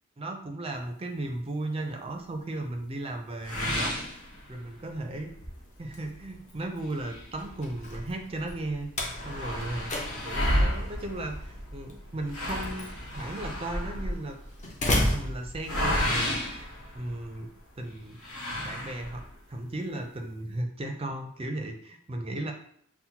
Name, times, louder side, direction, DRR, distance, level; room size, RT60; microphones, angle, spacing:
voice 1, 0.2-3.9 4.5-5.4 5.8-8.9 9.2-9.9 10.2-12.9 13.2-14.4 14.8-16.7 16.9-17.5 17.8-18.2 18.6-19.2 19.5-22.5, right 1 dB, 25° right, 3 dB, 0.4 m, -35 dB
sound 1, 3.4-4.9 5.3-5.4 5.9-6.0 6.8-8.1 8.4-8.5 8.8-17.5 18.2-19.3, equal, 75° left, 1.1 m, -32 dB
Slam, 5.3-16.2, left 1 dB, 35° left, 0.7 m, -35 dB
5.7 x 2.1 x 2.8 m, 0.64 s
head